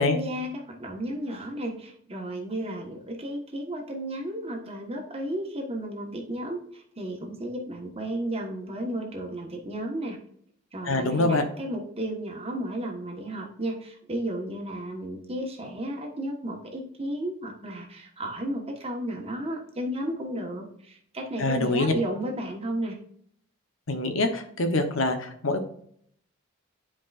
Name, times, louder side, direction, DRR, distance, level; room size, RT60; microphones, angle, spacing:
voice 1, 0.0-10.2 10.7-23.0, right 1 dB, 25° right, 2 dB, 1.2 m, -33 dB
voice 2, 10.8-11.4 21.4-21.9 23.9-25.6, left 2 dB, 60° left, 7 dB, 1.0 m, -25 dB
10.0 x 4.8 x 2.5 m, 0.65 s
head